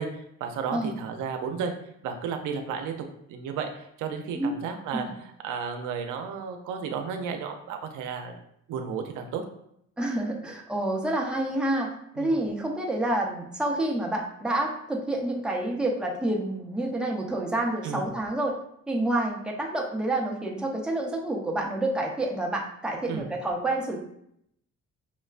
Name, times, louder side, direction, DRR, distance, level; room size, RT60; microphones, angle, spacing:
voice 1, 0.0-1.7 2.0-3.0 3.3-5.1 5.4-8.4 8.7-9.4 12.2-12.3 17.8-18.1 23.1-23.3, right 6 dB, 85° right, 5 dB, 0.5 m, -33 dB
voice 2, 10.0-18.6 18.9-24.0, right 1 dB, 5° right, -1 dB, 0.7 m, -28 dB
5.6 x 2.1 x 2.4 m, 0.73 s
cardioid pair, 90°, 30 cm